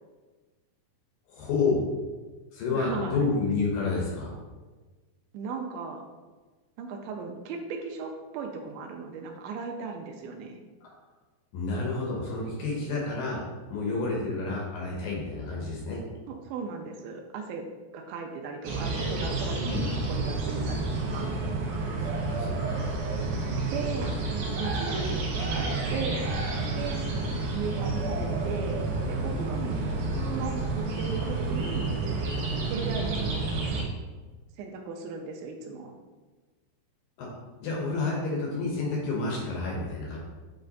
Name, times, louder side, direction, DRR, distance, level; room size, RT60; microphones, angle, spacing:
voice 1, 1.3-1.9 2.5-4.3 10.8-10.9 11.5-13.4 13.7-16.0 19.6-19.8 22.0-23.0 37.2-37.3 37.6-40.2, left 3 dB, 70° left, -2 dB, 2.2 m, -30 dB
voice 2, 2.7-3.3 5.3-6.0 6.8-10.6 16.3-17.7 17.9-21.3 23.6-24.1 24.5-26.3 26.7-27.1 27.5-28.8 29.1-29.9 30.3-30.6 31.0-31.9 32.7-33.5 34.6-35.9, right 5 dB, 90° right, 2 dB, 2.2 m, -37 dB
sound 1, 18.6-33.8, right 3 dB, 65° right, 2.7 m, -30 dB
7.9 x 3.2 x 3.9 m, 1.3 s
omnidirectional pair, 4.9 m